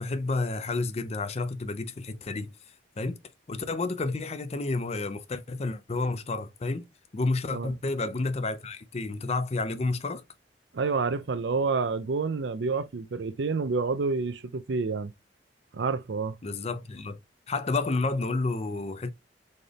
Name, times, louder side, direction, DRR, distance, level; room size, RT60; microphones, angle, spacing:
voice 1, 0.0-2.5 3.0-3.2 3.5-6.9 7.1-10.2 16.4-17.2 17.5-19.1, left 3 dB, 35° left, 0.5 m, -30 dB
voice 2, 10.7-15.1 15.7-16.4, right 4 dB, 75° right, 0.5 m, -28 dB
4.2 x 3.3 x 2.3 m
head